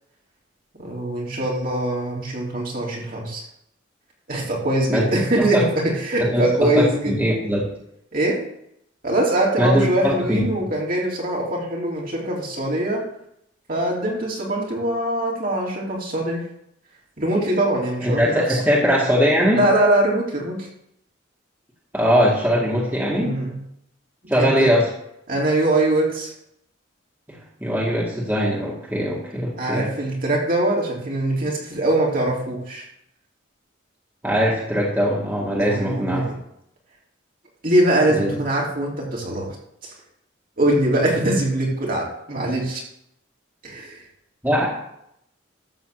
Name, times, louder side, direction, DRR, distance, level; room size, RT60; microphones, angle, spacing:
voice 1, 0.8-3.4 4.3-7.2 8.1-8.4 9.0-13.0 13.7-16.4 17.2-18.6 19.5-20.7 23.2-23.6 24.3-24.7 25.3-26.3 29.6-32.9 35.6-36.3 37.6-39.6 39.8-39.9 40.6-42.8 43.6-44.0, right 1 dB, 45° right, -3 dB, 3.1 m, -22 dB
voice 2, 6.2-7.7 9.6-10.4 18.0-19.6 21.9-23.3 24.3-24.9 27.3-29.9 34.2-36.3 38.1-38.3 44.4-44.7, equal, 10° right, -5 dB, 2.0 m, -21 dB
12.5 x 4.3 x 7.6 m, 0.75 s
head